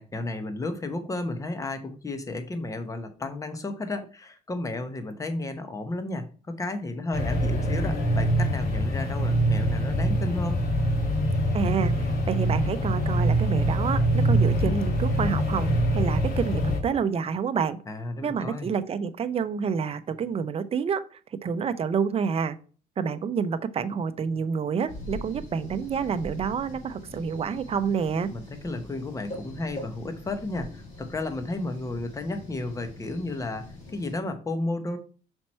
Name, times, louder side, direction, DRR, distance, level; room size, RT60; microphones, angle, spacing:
voice 1, 0.0-10.6 17.9-18.7 28.3-35.0, left 2 dB, 20° left, 8 dB, 1.0 m, -33 dB
sound 1, 7.1-16.8, right 1 dB, 65° left, 2.1 m, -24 dB
voice 2, 11.5-17.8 18.2-21.0 21.4-22.6 23.0-28.3, right 6 dB, 35° right, 11 dB, 0.6 m, -28 dB
sound 2, 24.9-34.2, left 1 dB, 45° left, 3.6 m, -42 dB
5.9 x 4.4 x 4.3 m, 0.39 s
cardioid pair, 110°, 17 cm